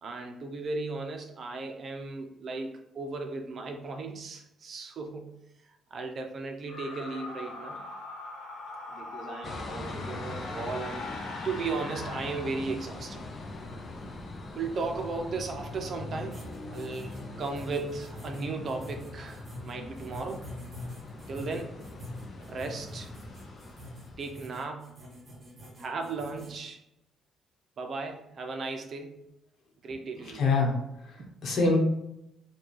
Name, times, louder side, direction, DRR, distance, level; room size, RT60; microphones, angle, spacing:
voice 1, 0.0-5.3 5.9-7.8 8.9-11.2 11.4-13.2 14.5-16.4 16.7-20.4 21.3-21.8 22.4-23.1 24.2-25.0 25.8-26.8 27.8-29.2 29.8-30.5 31.2-31.3, right 3 dB, 45° right, 4 dB, 0.6 m, -36 dB
sound 1, 6.6-13.1, left 3 dB, 90° left, 1.0 m, -41 dB
sound 2, 9.4-24.5, left 2 dB, 35° left, 0.5 m, -42 dB
sound 3, 16.3-26.6, equal, 25° right, 1.4 m, -46 dB
voice 2, 30.3-31.8, left 3 dB, 60° left, 0 dB, 1.0 m, -26 dB
4.3 x 2.3 x 3.1 m, 0.84 s
cardioid pair, 125°, 0 cm